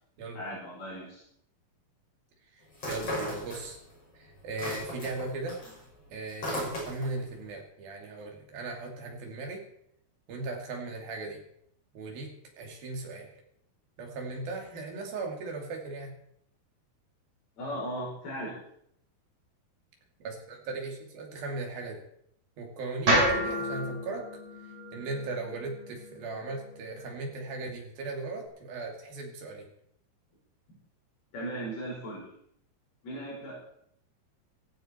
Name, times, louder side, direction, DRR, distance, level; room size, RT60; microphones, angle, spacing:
voice 1, 0.4-1.2 17.6-18.5 30.7-30.8 31.3-32.2 33.0-33.6, right 1 dB, 80° left, -5 dB, 7.5 m, -37 dB
voice 2, 2.5-3.8 4.1-5.6 6.1-9.6 10.3-11.4 11.9-13.4 14.0-16.1 20.2-22.0 22.6-24.3 24.6-29.7, right 3 dB, 70° right, 2 dB, 4.6 m, -38 dB
sound 1, 2.7-4.0 4.3-7.2, left 1 dB, 40° left, 7.4 m, -36 dB
sound 2, 23.1-27.2, right 1 dB, 50° right, 7.3 m, -30 dB
16.0 x 16.0 x 4.5 m, 0.70 s
omnidirectional pair, 4.3 m